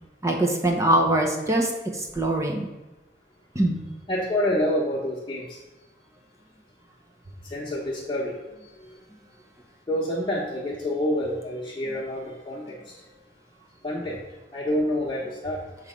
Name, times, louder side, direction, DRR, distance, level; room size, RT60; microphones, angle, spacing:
voice 1, 0.2-1.7 2.2-2.7 3.5-3.8, right 1 dB, 15° right, 1 dB, 0.8 m, -22 dB
voice 2, 4.1-5.4 7.5-8.3 9.9-12.6 13.8-14.2 14.5-15.6, left 1 dB, 25° left, -7 dB, 1.1 m, -27 dB
7.2 x 3.2 x 5.1 m, 1.1 s
head